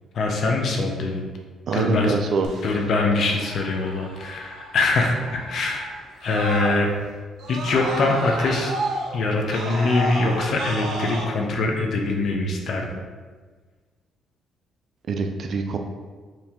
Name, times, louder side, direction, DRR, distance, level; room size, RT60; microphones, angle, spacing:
voice 1, 0.1-1.2 1.7-2.1 2.6-6.9 7.5-8.7 9.1-13.0, left 3 dB, 60° left, 2 dB, 0.6 m, -23 dB
voice 2, 1.7-2.5 15.1-15.8, right 4 dB, 60° right, 4 dB, 0.4 m, -24 dB
Screaming, 2.4-7.1 7.4-11.2, right 2 dB, 80° right, 0.7 m, -32 dB
4.5 x 2.7 x 3.5 m, 1.5 s
cardioid pair, 90°, 0 cm